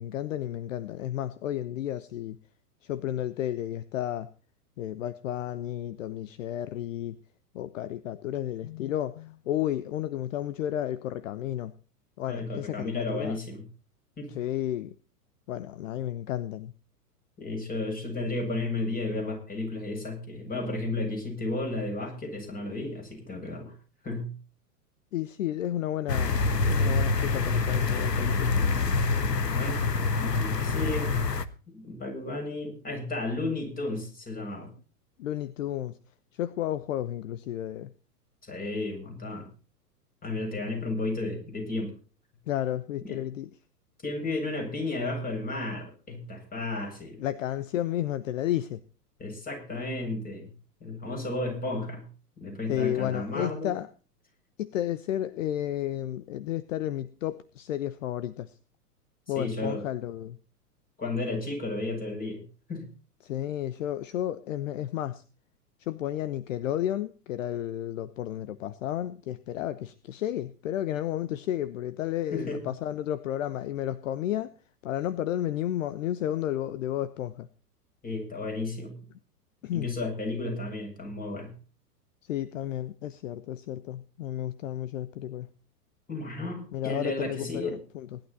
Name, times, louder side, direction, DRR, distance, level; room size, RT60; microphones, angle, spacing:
voice 1, 0.0-2.4 2.8-4.3 4.8-7.2 7.5-11.7 12.2-13.4 14.3-14.9 15.5-16.7 25.1-26.4 26.7-28.5 35.2-36.0 36.3-37.9 42.5-43.5 47.2-48.8 52.7-53.9 54.6-58.5 59.3-60.4 63.2-65.2 65.8-74.5 74.8-77.5 79.6-79.9 82.3-85.5 86.7-88.2, left 12 dB, 50° left, 15 dB, 1.0 m, -32 dB
voice 2, 12.3-13.6 14.2-14.3 17.4-23.7 24.0-24.3 29.5-31.2 31.7-34.7 38.4-39.5 40.2-41.9 43.0-43.2 44.0-47.2 49.2-50.5 50.8-52.0 52.4-53.7 59.3-59.8 61.0-62.4 62.7-62.9 72.3-72.6 78.0-79.0 79.7-81.5 86.1-87.8, left 2 dB, 20° left, 3 dB, 7.7 m, -33 dB
sound 1, 26.1-31.4, left 4 dB, 85° left, 1.3 m, -26 dB
19.0 x 12.0 x 4.1 m, 0.37 s
figure-of-eight pair, 105°, 48 cm